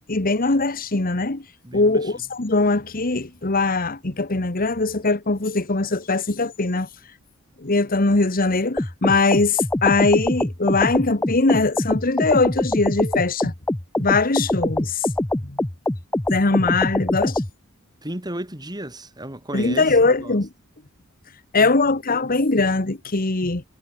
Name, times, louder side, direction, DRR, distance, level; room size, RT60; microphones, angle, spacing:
voice 1, 0.1-1.4 1.7-6.9 7.6-13.5 14.0-15.1 15.5-15.6 16.3-17.4 19.5-20.5 21.5-23.6, left 3 dB, 45° left, 1.5 m, -21 dB
voice 2, 1.6-2.1 18.0-20.4 21.6-21.8, right 1 dB, 20° right, 6.6 m, -34 dB
sound 1, 8.8-17.5, left 1 dB, 10° left, 0.6 m, -24 dB
head